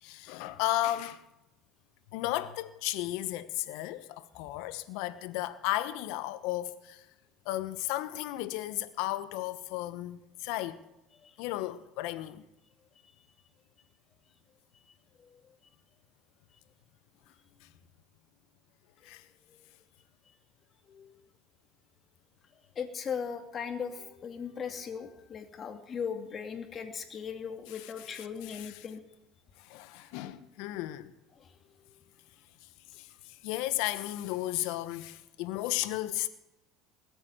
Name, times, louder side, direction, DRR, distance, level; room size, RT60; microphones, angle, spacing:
voice 1, 0.0-1.2 2.1-7.1 7.4-10.8 11.4-12.4 17.6-17.7 19.0-19.2 27.7-28.8 29.6-31.1 32.9-36.3, left 15 dB, 75° left, 1.2 m, -34 dB
voice 2, 22.8-29.0 30.0-30.1 31.4-31.5, left 6 dB, 40° left, 2.5 m, -38 dB
20.0 x 8.7 x 7.9 m
supercardioid pair, 85°, 0 cm